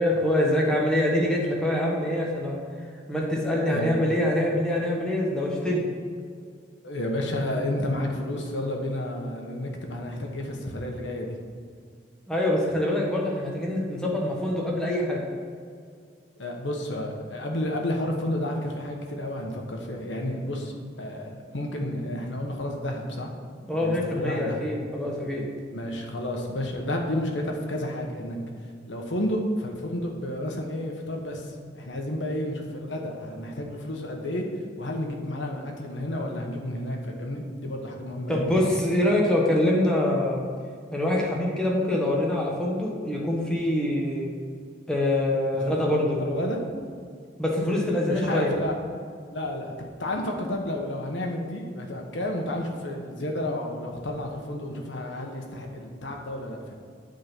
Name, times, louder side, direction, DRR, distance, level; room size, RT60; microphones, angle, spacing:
voice 1, 0.0-2.6 3.1-5.8 12.3-15.2 23.7-25.4 38.3-40.4 40.9-44.3 44.9-46.2 47.4-48.5, left 1 dB, 5° left, -3 dB, 1.3 m, -25 dB
voice 2, 6.8-11.4 16.4-20.7 21.0-23.3 23.8-24.6 25.7-28.4 28.9-34.4 34.8-38.8 45.5-45.8 46.2-46.6 47.9-48.8 49.3-56.7, left 1 dB, 80° left, 2 dB, 1.2 m, -31 dB
8.6 x 3.9 x 6.0 m, 2.1 s
head